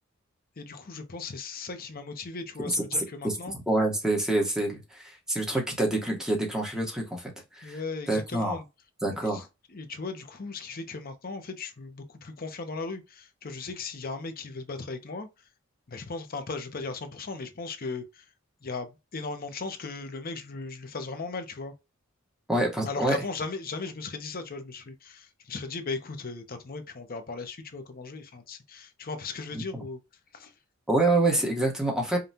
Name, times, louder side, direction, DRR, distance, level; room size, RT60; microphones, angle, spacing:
voice 1, 0.6-3.5 7.6-8.6 9.7-15.3 15.9-18.2 18.6-21.7 22.8-30.0 30.3-30.5, left 4 dB, 45° left, 0.7 m, -37 dB
voice 2, 3.7-7.8 8.1-8.6 9.0-9.4 22.5-23.2 29.5-29.8 30.9-32.2, right 2 dB, 5° right, 1.2 m, -27 dB
5.2 x 2.3 x 2.8 m
head